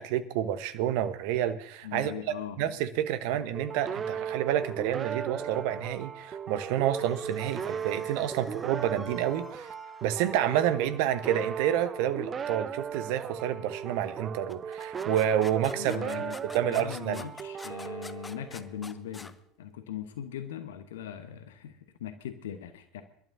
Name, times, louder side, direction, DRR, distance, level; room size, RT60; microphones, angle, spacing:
voice 1, 0.0-2.1 2.6-9.7 10.0-16.2 16.5-17.3, right 11 dB, 55° right, 13 dB, 1.0 m, -29 dB
voice 2, 1.8-2.6 3.3-3.4 15.8-16.4 16.6-23.0, left 9 dB, 65° left, 10 dB, 1.1 m, -40 dB
sound 1, 3.5-18.9, right 7 dB, 30° right, 0.7 m, -37 dB
sound 2, 6.8-11.2, equal, 5° right, 3.7 m, -51 dB
sound 3, 14.5-19.3, left 3 dB, 15° left, 0.8 m, -46 dB
26.0 x 12.5 x 2.7 m, 0.69 s
figure-of-eight pair, 75°, 0 cm